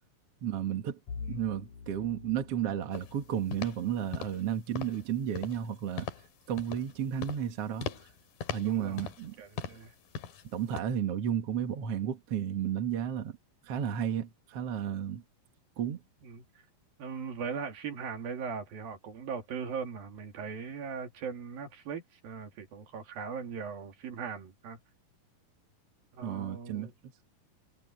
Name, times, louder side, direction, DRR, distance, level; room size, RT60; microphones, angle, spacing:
voice 1, 0.4-1.0 1.3-6.1 6.5-7.9 8.5-9.3 10.5-13.4 13.7-15.2 15.8-16.0 26.2-26.9, right 9 dB, 50° right, 2.2 m, -32 dB
Bowed string instrument, 1.1-6.2, left 5 dB, 60° left, 4.3 m, -47 dB
sound 1, 2.9-3.2 3.5-3.8 4.1-4.5 4.8-5.0 5.4-5.7 6.0-6.3 6.6-6.9 7.2-7.5 7.8-8.1 8.4-9.3 9.6-9.9 10.2-10.4 10.8-10.9, left 7 dB, 75° left, 4.0 m, -39 dB
voice 2, 8.6-9.1 9.4-9.9 16.2-16.5 17.0-24.8 26.1-26.9, right 6 dB, 80° right, 4.6 m, -39 dB
omnidirectional pair, 4.1 m